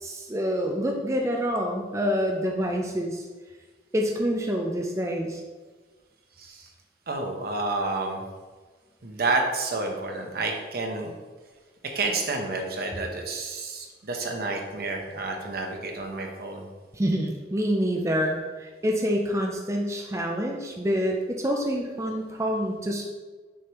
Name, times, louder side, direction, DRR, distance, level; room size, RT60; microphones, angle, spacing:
voice 1, 0.0-3.3 3.9-5.4 16.9-23.0, equal, 15° right, 1 dB, 0.5 m, -27 dB
voice 2, 6.4-6.7 7.1-8.2 9.0-11.1 11.9-16.7, right 3 dB, 60° right, 2 dB, 0.9 m, -30 dB
6.4 x 5.1 x 3.0 m, 1.3 s
head